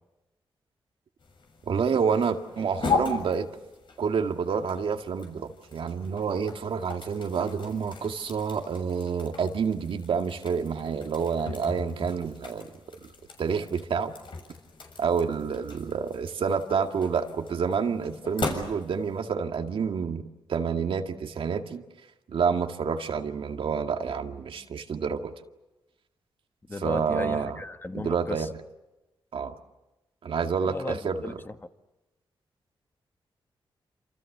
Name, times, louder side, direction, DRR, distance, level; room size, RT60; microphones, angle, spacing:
sound 1, 1.2-19.2, left 5 dB, 65° left, 6.6 m, -38 dB
voice 1, 1.7-3.5 4.0-12.7 13.4-14.1 15.0-20.2 20.5-21.8 22.3-25.3 26.8-27.6 27.9-28.5 29.3-29.5 30.2-31.2, right 6 dB, 75° right, 5 dB, 2.1 m, -28 dB
voice 2, 26.7-28.5 30.6-31.5, left 2 dB, 25° left, 8 dB, 1.6 m, -35 dB
28.5 x 27.5 x 6.8 m, 1.0 s
cardioid pair, 95°, 9 cm